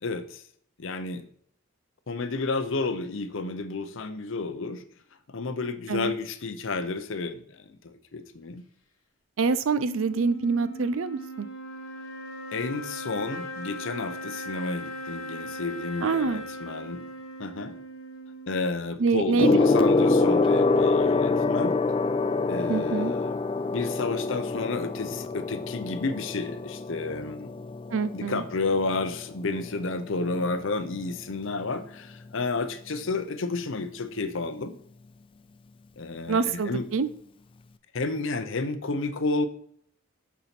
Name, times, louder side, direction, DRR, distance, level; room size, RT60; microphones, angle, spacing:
voice 1, 0.0-0.4 0.8-1.2 2.1-4.8 5.3-8.6 12.5-17.1 17.4-17.7 18.5-21.8 22.5-23.4 23.7-27.5 28.1-34.7 36.0-36.9 37.9-39.5, left 3 dB, 65° left, 10 dB, 0.7 m, -31 dB
voice 2, 9.4-11.5 16.0-16.4 19.0-19.6 22.7-23.1 27.9-28.4 36.3-37.1, right 4 dB, 70° right, 14 dB, 0.5 m, -26 dB
sound 1, 9.7-19.1, equal, 85° left, 1.3 m, -39 dB
Gong, 19.4-29.1 30.1-30.4, left 3 dB, 25° left, 0.3 m, -25 dB
7.0 x 4.7 x 5.9 m, 0.63 s
head